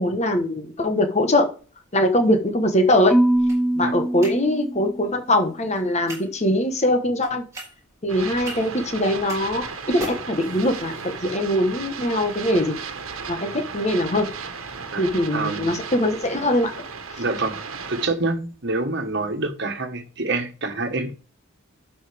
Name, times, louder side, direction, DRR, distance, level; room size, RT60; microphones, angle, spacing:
voice 1, 0.0-1.5 1.9-3.1 3.8-7.4 8.0-12.8 13.3-14.3 15.0-16.7, left 1 dB, 30° left, 1.2 m, -22 dB
sound 1, 1.6-19.5, right 1 dB, 15° right, 3.8 m, -45 dB
Marimba xylophone / Wood, 3.1-5.3, right 1 dB, ahead, 0.4 m, -22 dB
sound 2, 8.1-18.1, right 5 dB, 80° right, 1.3 m, -35 dB
voice 2, 15.3-15.8 17.2-17.6 17.9-21.1, right 3 dB, 55° right, 1.5 m, -26 dB
11.5 x 5.6 x 3.5 m
head